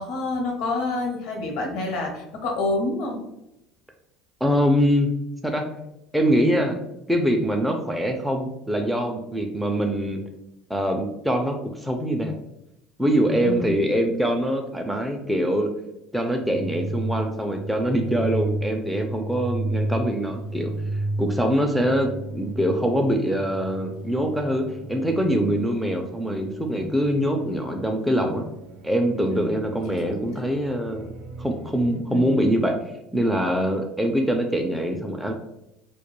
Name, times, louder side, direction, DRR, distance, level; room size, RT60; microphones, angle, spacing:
voice 1, 0.0-3.2 13.4-13.9 29.3-30.3 32.1-32.3, left 2 dB, 70° left, 1 dB, 0.7 m, -28 dB
voice 2, 4.4-5.1 5.4-5.7 6.1-6.8 7.1-10.2 10.7-12.3 13.0-15.7 16.1-20.7 21.2-28.4 28.8-31.1 31.4-32.7 33.1-35.3, equal, ahead, 2 dB, 0.3 m, -23 dB
sound 1, 16.4-32.0, right 1 dB, 80° right, 0.4 m, -34 dB
2.2 x 2.2 x 3.0 m, 0.85 s
supercardioid pair, 110°, 0 cm